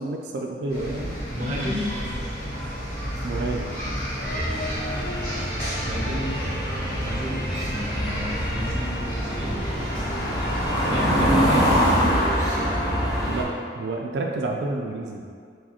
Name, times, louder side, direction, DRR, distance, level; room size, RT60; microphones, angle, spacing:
voice 1, 0.0-1.2 3.2-3.8 13.3-15.2, right 2 dB, 70° right, 1 dB, 0.3 m, -29 dB
sound 1, 0.7-11.3, equal, 50° left, 1.4 m, -31 dB
voice 2, 1.3-1.8 5.7-6.3 6.7-9.6 10.9-11.6, right 1 dB, 40° right, -3 dB, 0.7 m, -31 dB
sound 2, 4.2-13.4, equal, 20° left, 0.8 m, -25 dB
4.7 x 2.2 x 4.2 m, 2.2 s
head